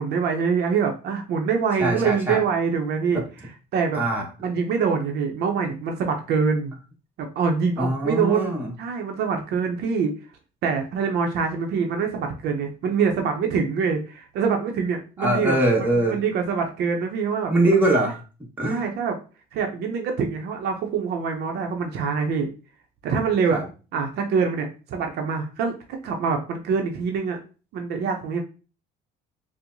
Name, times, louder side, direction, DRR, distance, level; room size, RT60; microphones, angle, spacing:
voice 1, 0.0-3.2 3.7-4.0 4.4-6.7 7.2-10.2 10.6-15.6 16.1-17.5 18.7-19.1 19.5-22.5 23.0-23.6 23.9-27.4 27.7-28.4, right 5 dB, 70° right, 4 dB, 0.6 m, -25 dB
voice 2, 1.8-2.4 3.1-3.2 3.9-4.3 7.8-8.7 15.2-16.2 17.5-18.2 18.6-18.8 23.5-23.7, right 1 dB, 10° right, -2 dB, 1.2 m, -22 dB
4.4 x 2.1 x 2.6 m, 0.34 s
cardioid pair, 110°, 17 cm